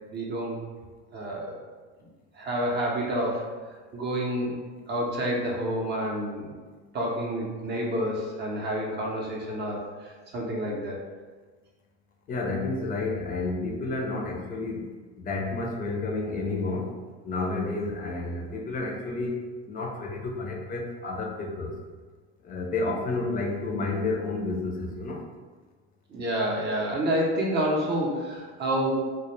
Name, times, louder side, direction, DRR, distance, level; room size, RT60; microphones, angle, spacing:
voice 1, 0.1-0.6 1.1-1.6 2.3-3.5 3.9-4.6 4.9-6.5 6.9-9.9 10.3-11.0 26.1-28.9, equal, 30° right, -2 dB, 0.6 m, -28 dB
voice 2, 12.3-14.9 15.2-16.9 17.2-19.4 19.7-21.7 22.4-25.2, left 3 dB, 25° left, -1 dB, 0.5 m, -30 dB
2.2 x 2.1 x 3.0 m, 1.4 s
supercardioid pair, 100°, 34 cm